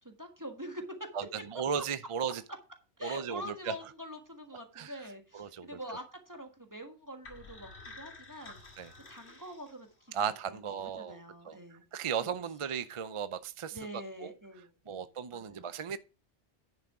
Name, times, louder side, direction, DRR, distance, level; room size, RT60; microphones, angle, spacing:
voice 1, 0.0-1.1 1.8-1.9 3.0-8.6 9.1-11.8 12.2-12.3 13.7-15.7, equal, 15° right, 1.5 m, -45 dB
voice 2, 1.5-2.4 3.0-3.7 4.8-4.9 5.3-5.8 8.8-8.9 10.1-11.2 11.5-13.8 14.2-14.3 14.9-16.0, right 7 dB, 40° right, 0.4 m, -36 dB
sound 1, 7.2-10.3, left 3 dB, 65° left, 2.5 m, -51 dB
10.5 x 6.2 x 4.7 m
omnidirectional pair, 1.2 m